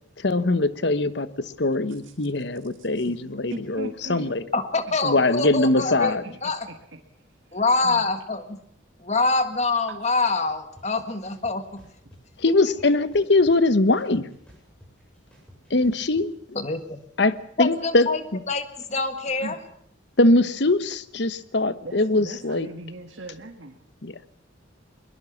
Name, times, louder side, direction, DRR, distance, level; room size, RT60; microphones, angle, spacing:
voice 1, 0.2-4.4 5.0-6.2 12.4-14.3 15.7-16.3 17.2-17.3 17.6-18.1 20.2-22.7 24.0-24.2, left 2 dB, 60° left, 14 dB, 1.0 m, -22 dB
voice 2, 3.0-4.4 4.8-5.3 5.8-7.0 7.5-8.0 9.9-10.0 19.4-19.6 21.8-23.8, right 2 dB, 70° right, 3 dB, 1.9 m, -40 dB
voice 3, 4.5-6.1 6.4-6.7 7.5-8.6 9.0-11.8 12.6-12.7 16.5-17.0 17.6-19.6, left 3 dB, 35° left, 9 dB, 1.7 m, -25 dB
sound 1, 10.8-10.9 11.3-12.2 12.6-13.7 14.0-16.3, equal, 5° left, 7.7 m, -51 dB
22.0 x 21.0 x 7.2 m, 0.68 s
head